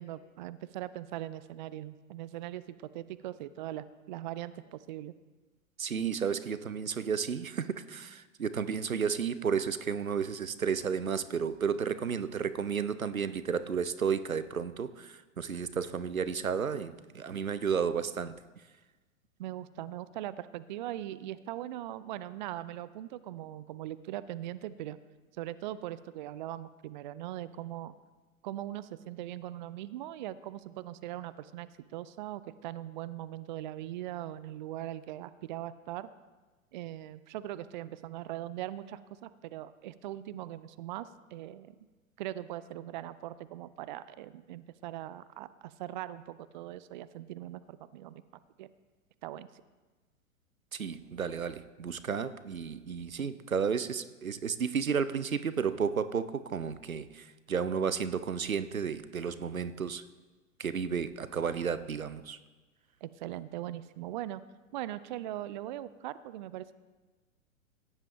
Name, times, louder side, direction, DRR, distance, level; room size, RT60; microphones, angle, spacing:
voice 1, 0.0-5.1 19.4-25.0 25.3-27.9 28.4-36.1 36.7-41.8 42.2-48.2 48.6-48.7 49.2-49.5 63.0-64.4 64.7-66.7, right 13 dB, 40° right, 16 dB, 0.4 m, -40 dB
voice 2, 5.8-18.4 50.7-60.0 60.6-62.4, right 6 dB, 90° right, 14 dB, 0.7 m, -32 dB
15.5 x 10.5 x 3.5 m, 1.2 s
figure-of-eight pair, 105°, 40 cm